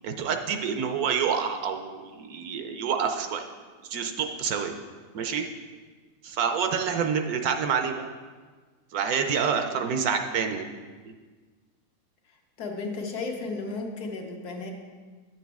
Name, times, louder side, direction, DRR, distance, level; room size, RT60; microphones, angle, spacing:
voice 1, 0.0-3.5 3.9-4.8 5.1-5.4 6.2-8.1 8.9-10.7, right 6 dB, 70° right, 6 dB, 1.0 m, -27 dB
voice 2, 12.6-14.7, left 3 dB, 70° left, 2 dB, 1.5 m, -34 dB
9.2 x 7.2 x 3.5 m, 1.4 s
omnidirectional pair, 1.7 m